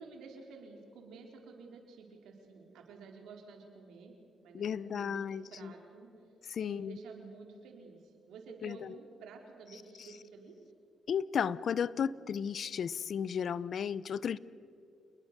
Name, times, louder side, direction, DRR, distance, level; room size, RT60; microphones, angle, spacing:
voice 1, 0.0-4.1 4.4-5.2 5.5-6.1 6.6-10.6, right 4 dB, 80° right, 3 dB, 4.0 m, -51 dB
voice 2, 4.5-5.7 6.5-7.0 8.6-8.9 11.1-14.4, left 7 dB, 65° left, 19 dB, 0.6 m, -34 dB
28.5 x 20.5 x 6.8 m, 2.4 s
supercardioid pair, 60°, 0 cm